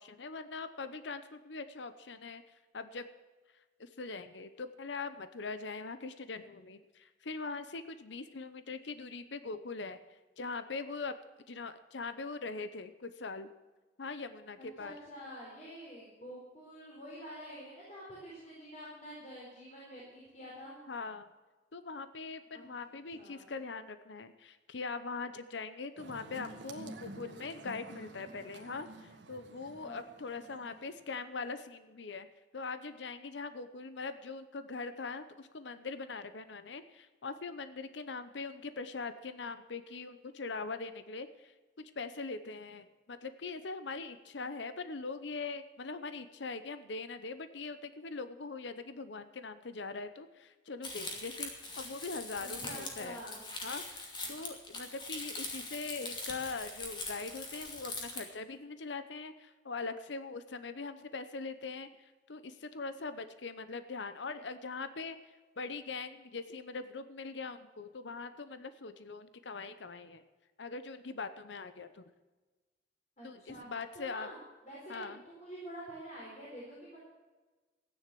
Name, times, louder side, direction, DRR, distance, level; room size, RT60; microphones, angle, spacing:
voice 1, 0.0-3.0 3.8-11.1 11.5-13.5 14.0-14.9 20.9-21.3 21.7-32.3 32.5-53.2 53.6-70.2 70.6-72.0 73.2-74.3 74.9-75.2, left 4 dB, 80° left, 11 dB, 0.8 m, -42 dB
voice 2, 14.6-20.7 22.5-22.7 23.1-23.4 29.8-30.0 52.4-53.4 54.2-54.4 73.2-73.7 73.9-74.3 74.6-77.0, equal, 40° left, -6 dB, 4.4 m, -47 dB
sound 1, 26.0-31.0, right 2 dB, 85° right, 1.7 m, -50 dB
Crumpling crinkling, 50.8-58.2, left 2 dB, 25° left, 2.5 m, -42 dB
14.5 x 10.0 x 7.6 m, 1.3 s
head